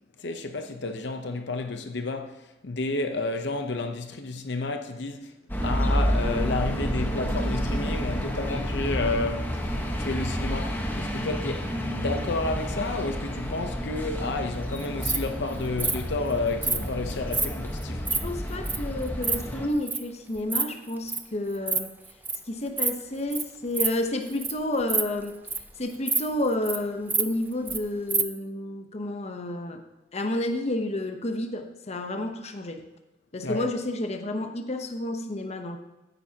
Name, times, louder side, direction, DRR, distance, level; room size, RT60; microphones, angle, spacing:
voice 1, 0.2-5.3 5.6-9.6 10.0-18.1 33.4-33.7, left 3 dB, 70° left, 0.8 m, -31 dB
sound 1, 5.5-19.7, equal, 10° left, 1.1 m, -30 dB
Insect, 14.8-15.2 15.8-16.0 16.6-16.8 17.3-17.5 17.8-18.2 18.7-18.8 19.0-19.4 19.9-20.0 20.4-20.6 20.9-21.2 21.5-21.8 22.0-22.4 22.8-23.0 23.3-23.4 23.7-23.9 24.3-24.5 24.8-25.7 26.1-26.2 26.5-26.8 27.1-27.8 28.1-28.2, right 4 dB, 10° right, 0.6 m, -26 dB
voice 2, 18.2-21.9 22.5-25.3 25.8-29.8 30.1-32.8 33.3-35.8, left 1 dB, 35° left, 0.9 m, -30 dB
15.0 x 9.4 x 2.9 m
head